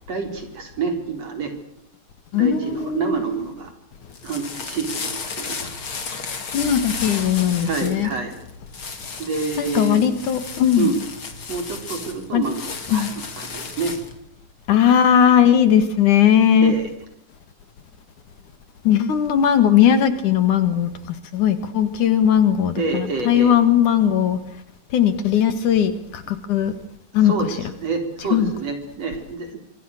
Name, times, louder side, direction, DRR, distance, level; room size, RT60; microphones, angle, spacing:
voice 1, 0.1-1.5 2.3-3.7 4.2-5.7 7.6-8.3 9.2-10.0 10.8-11.0 11.5-13.9 16.6-16.9 22.8-23.5 27.2-29.6, right 4 dB, 50° right, 6 dB, 5.1 m, -27 dB
voice 2, 2.3-3.4 6.5-8.1 9.6-10.9 12.3-12.5 12.9-13.1 14.7-16.7 18.9-20.9 21.3-24.4 24.9-26.7 27.1-27.6 28.3-28.5, left 9 dB, 65° left, 11 dB, 3.3 m, -18 dB
sound 1, 4.0-14.2, left 4 dB, 40° left, 3.4 m, -33 dB
25.5 x 25.0 x 6.7 m, 0.72 s
omnidirectional pair, 3.9 m